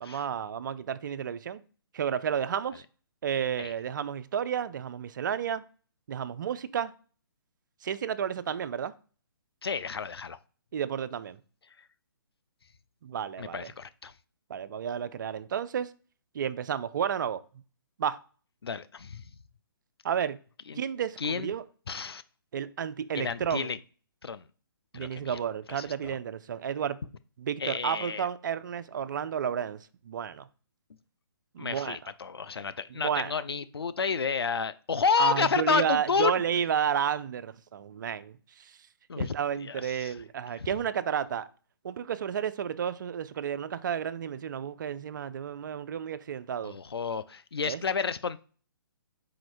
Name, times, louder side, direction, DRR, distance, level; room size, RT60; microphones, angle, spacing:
voice 1, 0.0-1.6 1.9-2.8 3.2-5.6 6.1-6.9 7.8-8.9 10.7-11.4 13.0-13.7 14.5-15.9 16.3-17.4 18.0-18.2 20.0-20.4 20.8-21.6 22.5-23.7 24.9-27.0 27.4-30.5 31.5-32.1 32.9-33.3 35.2-38.8 39.2-41.5 41.8-46.7 47.7-47.8, right 8 dB, 55° right, 0.4 m, -31 dB
voice 2, 9.6-10.4 13.4-14.1 18.6-19.2 20.7-20.8 21.2-21.5 21.9-22.2 23.1-23.8 24.2-24.4 24.9-25.4 25.7-26.2 27.6-28.3 31.6-36.4 39.1-39.3 39.6-40.1 40.6-40.7 46.6-48.4, left 5 dB, 90° left, 0.4 m, -30 dB
4.8 x 4.2 x 2.6 m
figure-of-eight pair, 140°, 13 cm